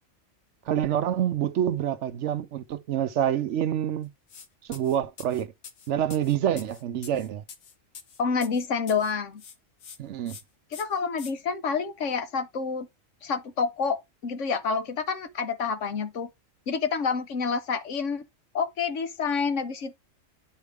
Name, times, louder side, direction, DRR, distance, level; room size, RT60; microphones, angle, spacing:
voice 1, 0.7-4.1 4.7-5.5 5.9-7.4 10.0-10.4, right 10 dB, 65° right, 0.9 m, -27 dB
sound 1, 4.3-4.5 4.7-9.1 9.4-10.0 10.3-10.4 10.7-11.3, left 6 dB, 90° left, 1.5 m, -45 dB
voice 2, 8.2-9.4 10.7-12.9 13.2-16.3 16.7-18.2 18.5-19.9, left 5 dB, 65° left, 1.3 m, -28 dB
9.3 x 4.5 x 3.5 m
omnidirectional pair, 1.4 m